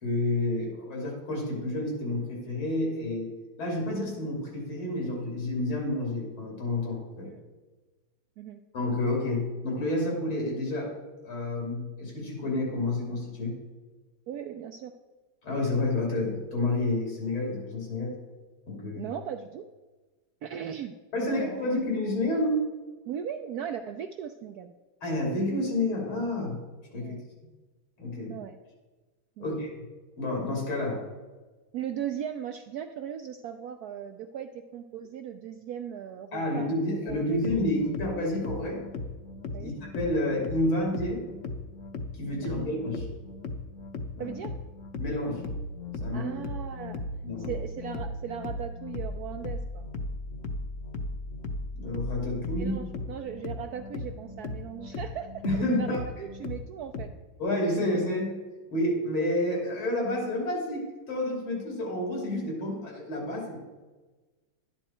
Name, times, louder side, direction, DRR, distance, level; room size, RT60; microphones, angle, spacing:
voice 1, 0.0-3.3 3.6-7.3 8.7-10.9 11.2-13.6 15.4-18.2 18.7-19.0 21.1-22.6 25.0-26.6 26.9-27.1 28.0-28.4 29.4-29.8 30.2-31.0 36.3-38.8 39.6-41.2 42.1-43.1 44.2-44.3 45.0-45.5 46.0-46.3 47.2-47.6 51.7-52.7 55.4-56.0 57.4-58.3 58.7-63.6, left 1 dB, 85° left, -1 dB, 3.4 m, -29 dB
voice 2, 14.3-14.9 18.9-19.7 20.4-20.9 21.2-21.7 23.1-24.7 27.0-27.2 28.3-28.6 29.4-29.5 31.7-36.7 37.0-37.4 39.5-39.7 42.3-42.8 44.2-44.5 46.1-47.0 47.4-49.9 52.5-57.1 57.8-57.9, right 9 dB, 80° right, 7 dB, 0.8 m, -38 dB
sound 1, 37.1-57.1, left 2 dB, 55° left, 0.9 m, -37 dB
12.0 x 9.8 x 4.3 m, 1.2 s
omnidirectional pair, 2.2 m